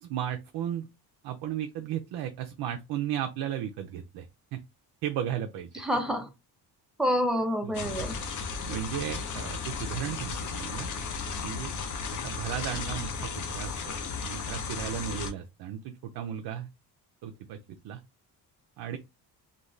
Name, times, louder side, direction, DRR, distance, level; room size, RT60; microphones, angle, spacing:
voice 1, 0.0-0.9 1.2-4.3 4.5-4.6 5.0-5.9 7.6-8.0 8.7-10.9 11.4-11.7 12.1-13.9 14.2-16.7 17.2-17.6 17.8-18.0 18.8-19.0, right 10 dB, 75° right, 0.5 m, -35 dB
voice 2, 5.7-6.3 7.0-8.2, equal, ahead, 0.5 m, -27 dB
sound 1, 7.7-15.3, left 5 dB, 50° left, 0.6 m, -35 dB
2.5 x 2.2 x 3.0 m
cardioid pair, 135°, 39 cm